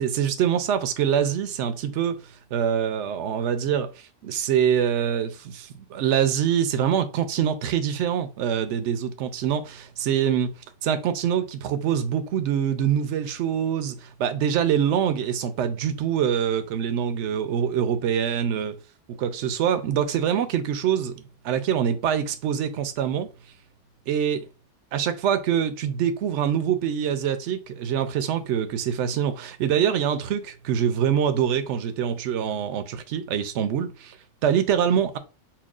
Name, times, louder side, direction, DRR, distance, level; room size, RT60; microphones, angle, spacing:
voice 1, 0.0-2.1 2.5-3.9 4.2-10.5 10.8-18.8 19.1-23.3 24.1-24.4 24.9-34.2 34.4-35.2, right 8 dB, 70° right, 0.9 m, -24 dB
5.8 x 2.3 x 2.4 m
omnidirectional pair, 1.3 m